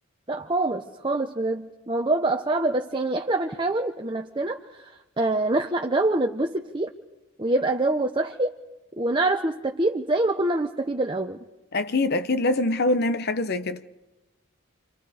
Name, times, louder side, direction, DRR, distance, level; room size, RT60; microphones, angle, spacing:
voice 1, 0.3-6.9 7.4-8.6 9.0-11.4, right 2 dB, 25° right, 0.8 m, -25 dB
voice 2, 11.7-13.8, left 2 dB, 50° left, 0.8 m, -24 dB
29.0 x 25.5 x 4.9 m
head